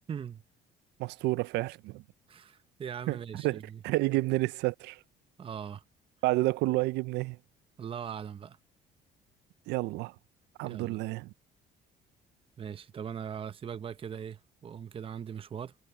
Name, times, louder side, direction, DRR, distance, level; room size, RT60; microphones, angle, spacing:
voice 1, 0.1-0.4 2.3-3.8 5.4-5.8 7.8-8.6 10.6-11.0 12.6-15.7, right 8 dB, 30° right, 0.7 m, -40 dB
voice 2, 1.0-2.0 3.1-3.2 3.4-5.0 6.2-7.4 9.7-10.1 10.6-11.3, right 20 dB, 85° right, 0.5 m, -30 dB
cardioid pair, 110°, 17 cm